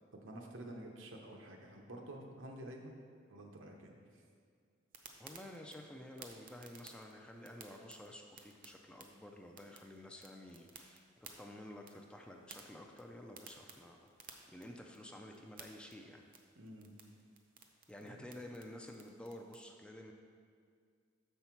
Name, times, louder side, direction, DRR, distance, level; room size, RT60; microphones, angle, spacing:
voice 1, 0.1-2.9 3.3-3.9 16.6-16.9 18.0-18.2, right 1 dB, 80° right, 1 dB, 0.9 m, -50 dB
sound 1, 4.9-19.6, right 5 dB, 45° right, 0.6 m, -59 dB
voice 2, 5.2-14.1 14.5-16.3 17.9-20.1, left 1 dB, 5° left, 2 dB, 0.4 m, -51 dB
6.7 x 5.6 x 4.5 m, 2.1 s
head